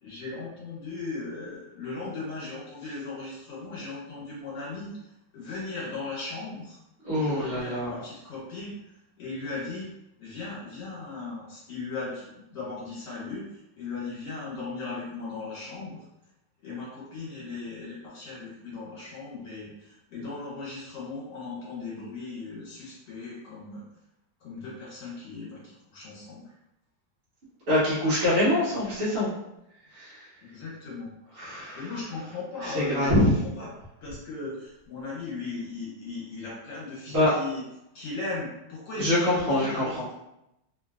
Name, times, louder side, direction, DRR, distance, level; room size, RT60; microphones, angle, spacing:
voice 1, 0.0-6.8 7.1-9.9 10.2-16.0 16.6-23.8 24.4-26.5 30.4-31.1 31.7-33.7 34.0-37.6 37.9-40.1, left 3 dB, 75° left, -6 dB, 1.7 m, -37 dB
voice 2, 7.1-8.0 27.7-29.3 29.9-30.2 31.4-31.8 32.6-33.3 37.1-37.3 39.0-39.8, left 1 dB, 45° right, -11 dB, 1.1 m, -24 dB
3.1 x 2.9 x 2.3 m, 0.86 s
omnidirectional pair, 1.9 m